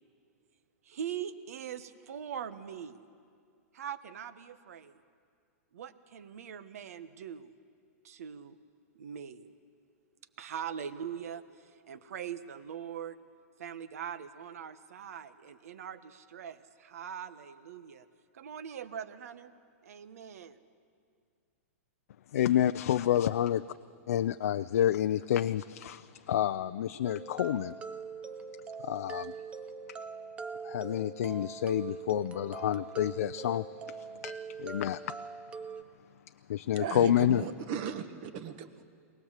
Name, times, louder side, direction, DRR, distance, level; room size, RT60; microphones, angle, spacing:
voice 1, 0.8-3.0 3.7-5.0 5.7-7.5 8.0-8.6 8.9-9.5 10.4-13.2 13.6-18.1 18.3-19.5 19.8-20.6, right 8 dB, 75° right, 12 dB, 1.1 m, -42 dB
voice 2, 22.3-23.6 24.1-27.8 28.8-29.3 30.6-35.2 36.5-37.4, left 11 dB, 75° left, 11 dB, 0.4 m, -29 dB
sound 1, 27.1-35.8, right 5 dB, 15° right, 0.6 m, -42 dB
voice 3, 36.8-38.8, right 8 dB, 40° right, 10 dB, 1.3 m, -37 dB
23.0 x 18.5 x 7.4 m, 2.2 s
hypercardioid pair, 155°, 8 cm